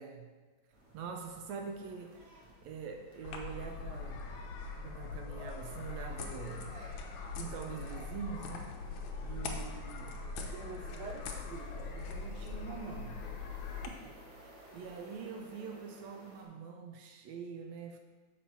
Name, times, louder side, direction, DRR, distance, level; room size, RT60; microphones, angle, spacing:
sound 1, 0.7-16.4, right 1 dB, 60° right, 3.3 m, -57 dB
voice 1, 0.9-4.3 4.8-6.8 7.4-8.7 9.2-13.3 13.9-18.0, right 6 dB, 80° right, 4 dB, 1.8 m, -45 dB
sound 2, 3.2-13.9, left 4 dB, 85° left, 2.3 m, -42 dB
7.3 x 4.5 x 6.8 m, 1.4 s
omnidirectional pair, 3.4 m